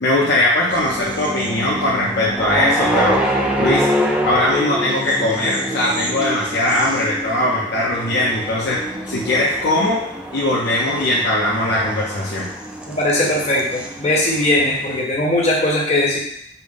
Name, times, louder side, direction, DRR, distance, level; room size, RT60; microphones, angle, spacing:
voice 1, 0.0-3.2 3.6-3.9 4.2-10.0 10.3-12.5, left 1 dB, 60° left, -4 dB, 0.6 m, -20 dB
sound 1, 0.7-15.0, equal, 5° right, 0.4 m, -26 dB
voice 2, 12.9-16.2, left 1 dB, 35° left, -4 dB, 1.1 m, -19 dB
5.4 x 2.1 x 3.4 m, 0.70 s
head